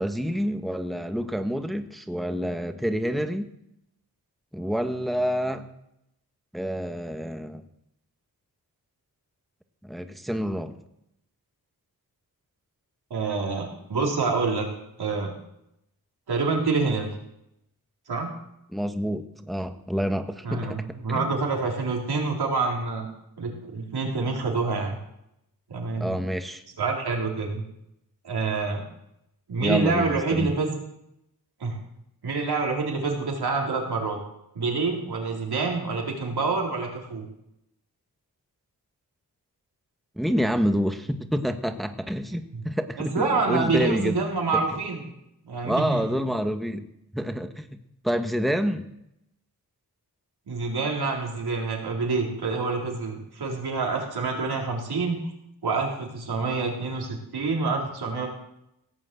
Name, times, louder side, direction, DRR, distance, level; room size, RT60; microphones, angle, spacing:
voice 1, 0.0-3.5 4.5-5.7 6.5-7.6 9.8-10.8 18.7-20.8 21.1-21.3 26.0-26.6 29.6-30.5 40.2-44.2 45.6-46.8 47.1-47.7 48.0-48.9, equal, ahead, 7 dB, 1.4 m, -28 dB
voice 2, 13.1-14.7 15.0-15.3 16.3-17.1 18.1-18.3 20.4-23.1 23.4-25.0 25.7-26.1 26.8-27.6 28.2-28.8 29.5-30.7 31.6-31.8 32.2-34.2 34.5-37.2 42.5-42.6 43.0-45.0 45.5-46.1 50.5-55.2 55.6-58.3, right 4 dB, 85° right, -1 dB, 4.0 m, -27 dB
17.5 x 7.5 x 7.8 m, 0.81 s
cardioid pair, 50°, 38 cm